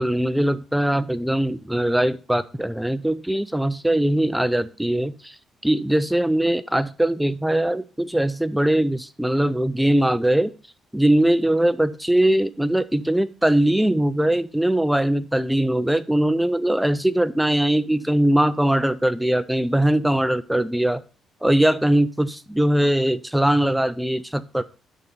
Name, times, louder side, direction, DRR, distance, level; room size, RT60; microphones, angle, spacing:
voice 1, 0.0-5.4 5.6-10.5 10.9-21.0 21.4-24.6, right 1 dB, 5° right, 14 dB, 0.4 m, -21 dB
11.0 x 4.1 x 5.2 m, 0.37 s
cardioid pair, 90°, 0 cm